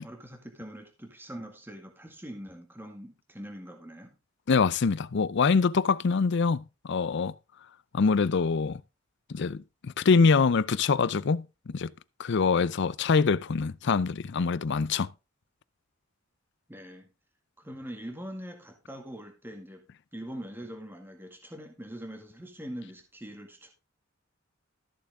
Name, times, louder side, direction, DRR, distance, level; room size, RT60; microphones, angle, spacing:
voice 1, 0.0-4.1 16.7-17.1 17.6-19.9 20.1-23.7, equal, 10° right, 2.0 m, -43 dB
voice 2, 4.5-7.3 7.9-8.8 9.3-11.5 11.7-11.9 12.2-15.1, left 5 dB, 60° left, 0.5 m, -24 dB
14.0 x 6.8 x 3.6 m
head